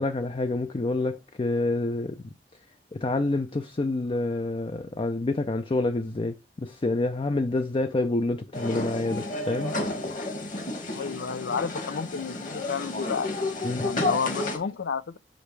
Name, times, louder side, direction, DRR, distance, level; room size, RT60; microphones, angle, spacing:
voice 1, 0.0-2.2 2.9-9.7 13.6-13.9, left 2 dB, 30° left, 0.4 m, -28 dB
sound 1, 8.5-14.6, left 2 dB, 50° left, 1.7 m, -31 dB
voice 2, 10.9-13.3 13.8-15.2, left 5 dB, 90° left, 0.5 m, -31 dB
6.6 x 5.1 x 3.2 m
head